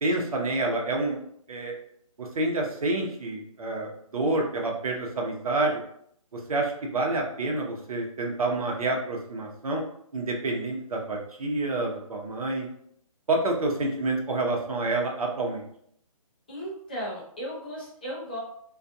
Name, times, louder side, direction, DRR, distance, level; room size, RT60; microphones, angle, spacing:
voice 1, 0.0-1.2 1.5-1.7 2.2-5.7 6.3-9.8 10.1-12.7 13.3-15.6, right 2 dB, 80° right, 0 dB, 0.8 m, -28 dB
voice 2, 16.5-18.4, equal, 15° left, -5 dB, 0.4 m, -35 dB
2.5 x 2.3 x 2.6 m, 0.68 s
hypercardioid pair, 175°, 18 cm